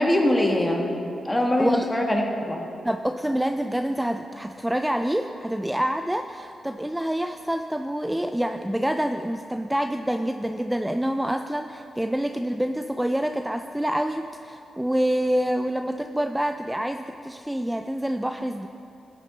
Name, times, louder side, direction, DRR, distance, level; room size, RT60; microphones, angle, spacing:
voice 1, 0.0-2.6, left 1 dB, 20° left, 1 dB, 1.5 m, -23 dB
voice 2, 2.8-18.7, right 1 dB, 10° right, 7 dB, 0.4 m, -27 dB
12.0 x 8.4 x 3.9 m, 2.7 s
supercardioid pair, 50°, 0 cm